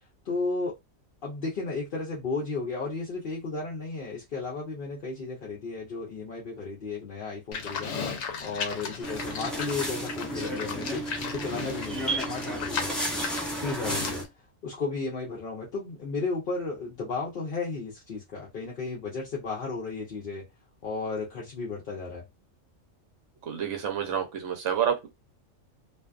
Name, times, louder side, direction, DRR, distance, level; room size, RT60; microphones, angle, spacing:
voice 1, 0.2-0.8 1.2-7.9 8.4-13.0 13.6-14.3 14.6-20.5 20.8-22.2, left 3 dB, 50° left, 0.7 m, -34 dB
Livestock farm animals working animals, 7.5-14.3, left 6 dB, 80° left, 1.0 m, -36 dB
sound 1, 9.0-14.2, right 1 dB, ahead, 0.5 m, -33 dB
voice 2, 23.5-25.1, right 8 dB, 65° right, 0.9 m, -28 dB
2.5 x 2.3 x 2.3 m
omnidirectional pair, 1.4 m